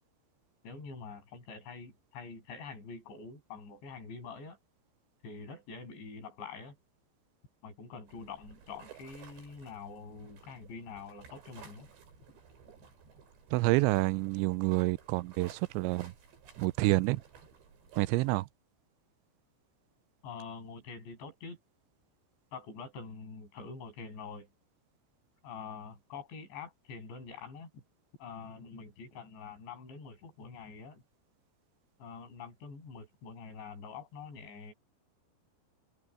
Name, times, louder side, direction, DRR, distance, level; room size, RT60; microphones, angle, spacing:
voice 1, 0.6-4.6 5.2-6.8 7.6-11.9 20.2-21.6 22.5-24.5 25.4-27.8 28.2-31.0 32.0-34.7, left 5 dB, 75° left, 9.7 m, -46 dB
sound 1, 8.1-18.3, right 6 dB, 70° right, 7.3 m, -56 dB
voice 2, 13.5-16.1 16.6-17.2 18.0-18.5, right 21 dB, 85° right, 2.9 m, -28 dB
open air
omnidirectional pair, 5.2 m